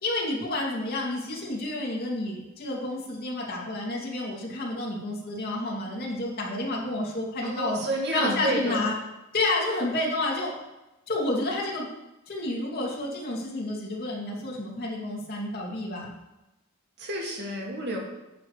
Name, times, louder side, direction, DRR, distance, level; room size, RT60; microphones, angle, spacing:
voice 1, 0.0-7.8 8.1-8.9 9.3-10.5 11.1-11.9 12.3-16.1, left 2 dB, 45° left, -3 dB, 2.7 m, -30 dB
voice 2, 7.4-8.8 17.0-18.0, right 1 dB, 55° right, -1 dB, 2.2 m, -30 dB
12.0 x 8.5 x 3.3 m, 0.97 s
head